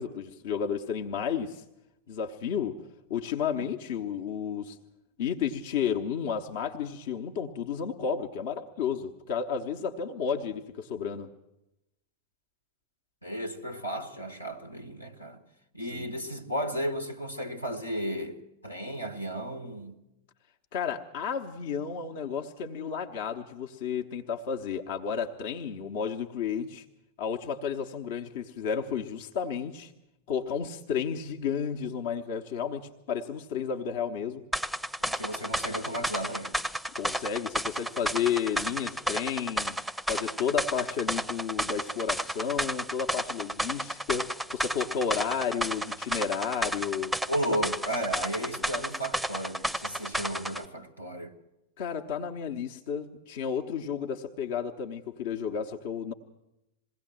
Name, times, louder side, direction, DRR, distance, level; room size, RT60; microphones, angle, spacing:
voice 1, 0.0-1.6 2.1-2.8 3.1-4.8 5.2-11.3 15.9-16.1 20.7-26.8 27.2-29.9 30.3-34.4 37.0-39.8 40.1-47.1 51.8-56.1, left 7 dB, 50° left, 1.0 m, -32 dB
voice 2, 13.2-15.4 15.7-20.0 35.0-36.5 47.3-51.3, equal, 85° left, 1.5 m, -34 dB
sound 1, 34.5-50.6, right 1 dB, ahead, 0.7 m, -32 dB
21.5 x 16.5 x 7.7 m
figure-of-eight pair, 90°, 0 cm